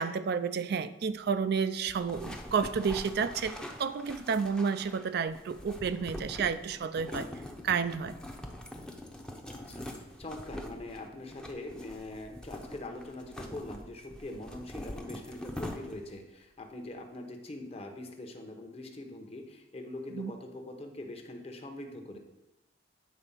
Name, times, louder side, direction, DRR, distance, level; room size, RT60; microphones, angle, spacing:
voice 1, 0.0-7.3 7.6-8.2 20.1-20.3, right 6 dB, 60° right, 12 dB, 0.4 m, -31 dB
sound 1, 1.9-16.2, left 1 dB, 5° left, 0.7 m, -44 dB
voice 2, 9.5-22.2, left 2 dB, 35° left, 4 dB, 0.9 m, -43 dB
8.5 x 4.0 x 5.6 m, 0.96 s
head